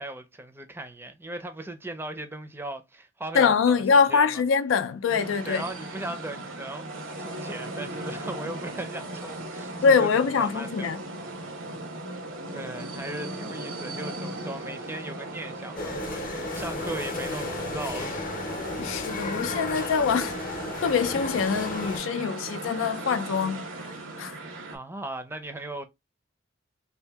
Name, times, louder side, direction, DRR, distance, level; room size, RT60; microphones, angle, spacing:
voice 1, 0.0-3.8 4.1-4.4 5.4-6.8 7.2-10.9 12.5-18.3 24.2-25.8, right 1 dB, 10° right, 0.5 m, -38 dB
voice 2, 3.3-5.7 9.8-11.0 18.8-20.4 20.8-23.7 24.2-24.4, left 5 dB, 85° left, 0.4 m, -24 dB
sound 1, 5.1-24.8, right 2 dB, 90° right, 0.9 m, -37 dB
sound 2, 15.8-22.0, left 2 dB, 45° left, 0.7 m, -34 dB
2.8 x 2.6 x 3.4 m
head